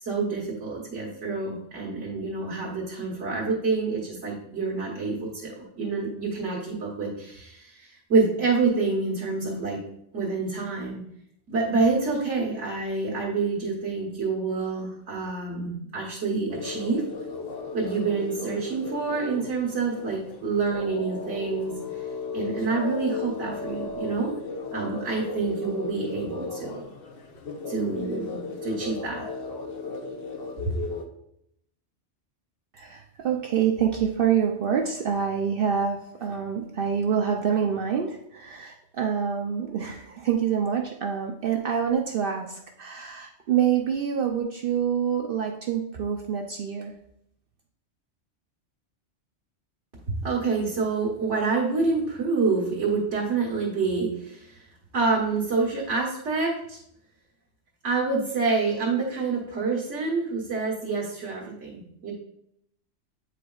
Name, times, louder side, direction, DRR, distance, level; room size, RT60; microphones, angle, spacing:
voice 1, 0.0-9.8 10.1-11.0 11.5-17.0 17.7-21.7 22.3-24.3 24.7-26.8 27.7-29.2 50.1-54.6 54.9-56.8 57.8-62.1, right 4 dB, 85° right, -5 dB, 1.6 m, -27 dB
sound 1, 16.5-31.0, left 4 dB, 60° left, 0.9 m, -36 dB
voice 2, 32.7-46.9, right 7 dB, 60° right, 2 dB, 0.7 m, -26 dB
8.5 x 4.9 x 2.3 m, 0.74 s
omnidirectional pair, 1.2 m